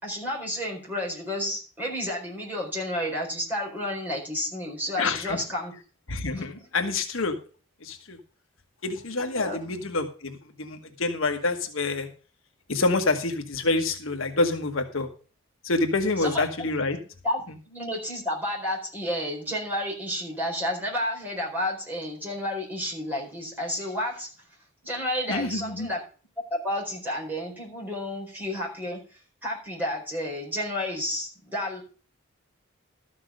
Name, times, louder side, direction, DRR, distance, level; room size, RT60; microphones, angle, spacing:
voice 1, 0.0-5.7 6.3-6.4 9.3-9.6 16.2-16.7 17.2-17.4 17.7-24.3 24.8-26.0 26.5-31.8, left 1 dB, 10° right, -3 dB, 4.4 m, -31 dB
voice 2, 5.0-5.4 6.1-7.3 7.8-8.2 8.8-12.1 12.7-15.1 15.6-17.0 25.3-25.9, left 3 dB, 70° left, 5 dB, 1.3 m, -27 dB
13.0 x 6.0 x 6.3 m, 0.38 s
head